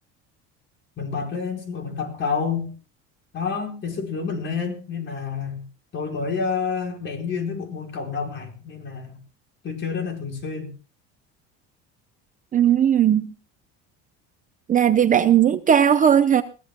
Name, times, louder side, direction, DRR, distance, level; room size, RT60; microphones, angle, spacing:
voice 1, 1.0-2.7 3.3-5.7 5.9-9.2 9.6-10.7, left 5 dB, 40° left, 4.7 m, -29 dB
voice 2, 12.5-13.3 14.7-16.4, right 9 dB, 25° right, 0.6 m, -17 dB
21.5 x 16.5 x 2.2 m
cardioid pair, 145°, 31 cm